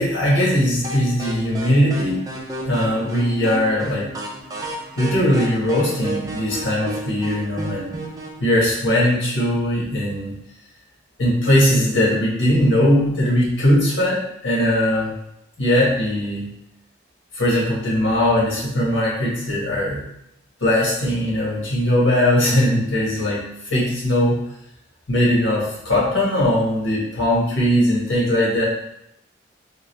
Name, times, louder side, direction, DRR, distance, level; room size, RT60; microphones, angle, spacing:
voice 1, 0.0-2.3 2.6-4.1 5.0-8.0 8.4-10.3 11.2-15.1 15.6-16.5 17.3-20.0 20.6-24.4 25.1-28.6, left 1 dB, 90° left, -5 dB, 1.4 m, -20 dB
sound 1, 0.8-8.4, right 2 dB, 20° right, 0.4 m, -33 dB
3.7 x 2.5 x 3.2 m, 0.80 s
head